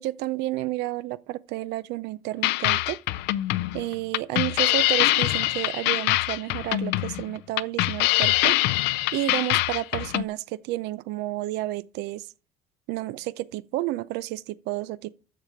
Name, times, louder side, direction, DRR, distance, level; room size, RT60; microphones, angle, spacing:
voice 1, 0.0-3.0 3.7-8.6 9.1-12.3 12.9-15.1, right 16 dB, 75° right, 0.5 m, -31 dB
sound 1, 2.4-10.2, left 18 dB, 90° left, 0.5 m, -24 dB
7.5 x 6.8 x 7.0 m
cardioid pair, 165°, 17 cm